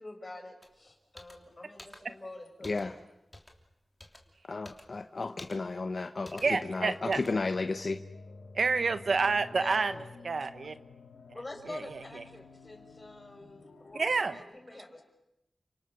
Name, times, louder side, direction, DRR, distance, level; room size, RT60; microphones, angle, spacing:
voice 1, 0.0-3.0 9.2-10.1 11.3-15.0, left 2 dB, 30° left, 5.6 m, -46 dB
sound 1, 0.6-0.7 1.2-1.3 1.8-2.0 2.6-2.9 3.3-3.6 4.0-4.2 4.7-4.9 5.4-5.6 6.3-6.4 7.1-7.3, left 1 dB, 15° left, 3.2 m, -49 dB
voice 2, 2.6-2.9 4.4-8.0, left 3 dB, 50° left, 1.0 m, -33 dB
sound 2, 6.4-14.4, left 3 dB, 65° left, 4.4 m, -51 dB
voice 3, 6.4-7.2 8.5-9.9 10.2-10.8 11.7-12.2 13.9-14.4, right 4 dB, 65° right, 1.3 m, -29 dB
30.0 x 26.5 x 7.0 m
wide cardioid pair, 115°, 0 cm